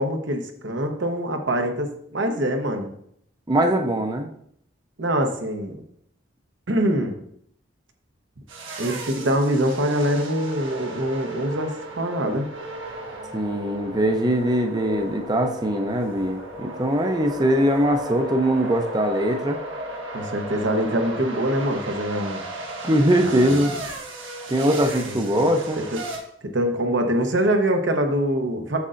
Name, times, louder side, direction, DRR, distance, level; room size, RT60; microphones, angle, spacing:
voice 1, 0.0-2.9 5.0-5.8 6.7-7.2 8.8-12.5 20.1-22.4 23.2-23.6 25.1-25.5 25.8-26.0 26.4-28.8, right 1 dB, 70° right, 4 dB, 0.9 m, -24 dB
voice 2, 3.5-4.3 13.3-19.6 22.8-23.7 24.5-25.8, right 1 dB, 20° right, 5 dB, 0.6 m, -21 dB
sound 1, 8.5-26.2, right 1 dB, 90° right, 1.4 m, -35 dB
8.2 x 6.6 x 2.5 m, 0.69 s
head